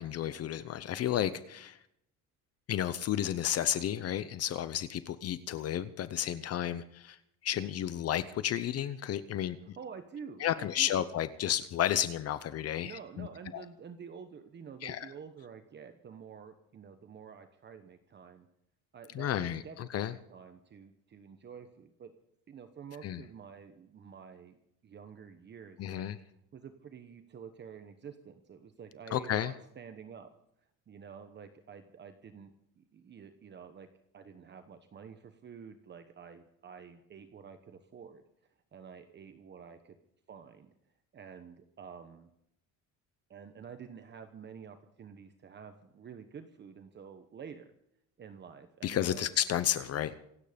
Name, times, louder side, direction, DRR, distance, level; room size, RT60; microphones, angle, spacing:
voice 1, 0.0-1.8 2.7-7.2 7.4-9.8 10.4-13.3 13.5-13.6 14.8-15.1 19.1-20.1 23.0-23.2 25.8-26.2 29.1-29.5 48.8-50.1, left 11 dB, 45° left, 13 dB, 0.8 m, -32 dB
voice 2, 9.6-11.0 12.8-18.5 18.9-22.1 22.5-24.6 24.8-26.2 26.5-30.3 30.9-32.5 32.8-33.9 34.1-38.2 38.7-40.0 40.3-40.7 41.1-42.3 43.3-47.7 48.2-49.3, right 6 dB, 30° right, 7 dB, 1.1 m, -49 dB
26.5 x 9.2 x 5.2 m, 0.77 s
cardioid pair, 145°, 33 cm